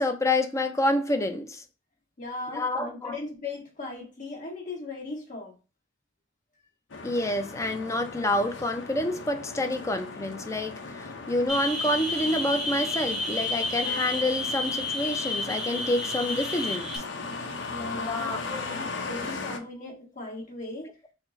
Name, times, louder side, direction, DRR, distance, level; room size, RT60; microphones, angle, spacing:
voice 1, 0.0-1.6 2.5-3.2 7.0-16.9 18.1-18.6, left 1 dB, 15° left, 0.4 m, -28 dB
voice 2, 2.2-5.5 17.7-20.9, left 2 dB, 45° left, 1.4 m, -38 dB
sound 1, 6.9-19.6, left 3 dB, 80° left, 0.7 m, -38 dB
sound 2, 11.5-17.0, left 2 dB, 5° right, 0.8 m, -31 dB
4.2 x 2.0 x 4.0 m
head